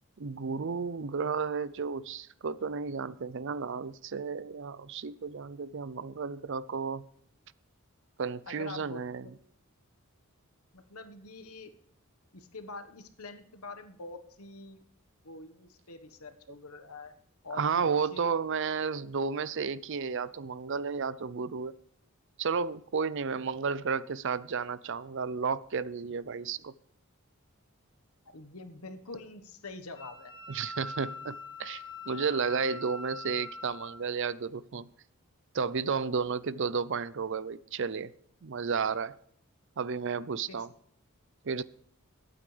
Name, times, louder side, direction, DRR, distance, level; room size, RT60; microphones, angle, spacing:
voice 1, 0.2-7.0 8.2-9.3 17.5-21.7 22.4-26.7 30.5-34.9 35.5-38.1 38.4-39.2 39.8-40.7 41.4-41.6, right 5 dB, 55° right, 0.5 m, -32 dB
voice 2, 8.5-9.3 10.7-11.7 12.3-14.8 15.2-17.1 17.4-17.8 18.1-18.3 28.3-30.3 32.7-32.8 40.5-40.7, left 3 dB, 85° left, 1.3 m, -45 dB
Wind instrument woodwind instrument, 29.9-34.0, left 3 dB, 20° left, 3.3 m, -43 dB
21.5 x 8.8 x 3.3 m
head